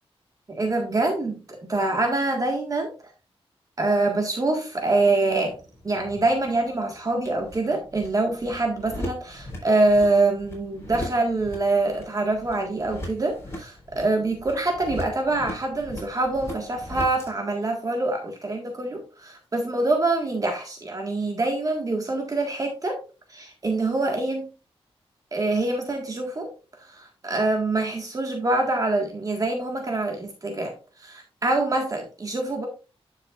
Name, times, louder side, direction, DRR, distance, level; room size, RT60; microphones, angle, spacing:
voice 1, 0.5-2.9 3.8-5.6 5.8-23.0 23.3-24.5 25.3-26.5 26.8-32.7, right 2 dB, 35° right, 2 dB, 1.6 m, -25 dB
sound 1, 5.3-17.3, left 1 dB, 25° left, 4.1 m, -40 dB
10.5 x 6.5 x 2.5 m, 0.31 s
wide cardioid pair, 120°, 10 cm